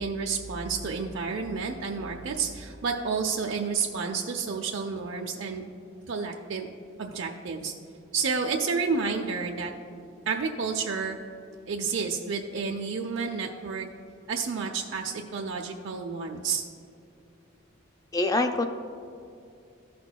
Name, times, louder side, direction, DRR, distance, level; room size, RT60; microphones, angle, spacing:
voice 1, 0.0-5.6 6.1-6.7 7.0-7.7 8.1-9.7 10.3-11.2 11.7-13.9 14.3-16.6, right 5 dB, 65° right, 1 dB, 0.5 m, -30 dB
voice 2, 18.1-18.7, left 2 dB, 15° left, 6 dB, 0.3 m, -24 dB
14.0 x 5.9 x 2.2 m, 2.5 s
head